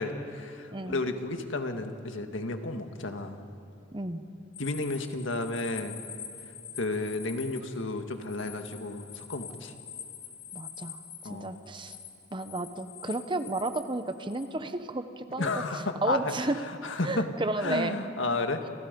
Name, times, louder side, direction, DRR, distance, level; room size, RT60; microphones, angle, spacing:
voice 1, 0.0-3.4 4.6-6.0 6.8-9.7 11.2-11.5 15.4-16.2 16.8-17.3 17.6-18.7, left 2 dB, 80° left, 6 dB, 1.8 m, -32 dB
voice 2, 3.9-4.2 10.5-12.0 12.3-16.6 17.0-18.0, right 2 dB, 25° right, 10 dB, 1.0 m, -33 dB
sound 1, 4.5-14.5, left 8 dB, 45° left, 3.3 m, -45 dB
29.5 x 27.0 x 5.3 m, 2.8 s
head